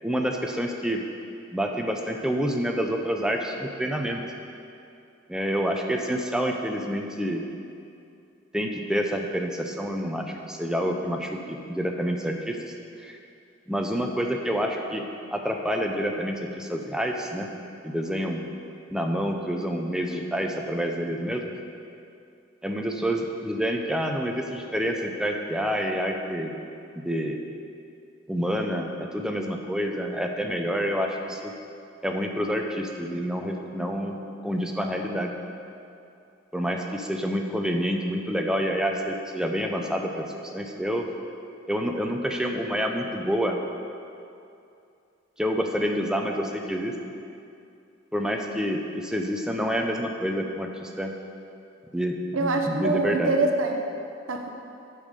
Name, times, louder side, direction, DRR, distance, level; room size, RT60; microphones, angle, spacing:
voice 1, 0.0-1.0 1.5-4.2 5.3-7.4 8.5-13.2 13.7-15.0 15.3-17.5 17.8-18.4 18.9-21.5 22.6-26.5 26.9-27.4 28.3-31.5 32.0-35.3 36.5-41.1 41.7-43.6 45.4-46.9 48.1-51.1 51.9-53.3, equal, 5° right, 2 dB, 0.6 m, -28 dB
voice 2, 52.3-53.8 54.3-54.5, right 2 dB, 75° right, 3 dB, 0.7 m, -24 dB
8.3 x 5.4 x 6.6 m, 2.6 s
head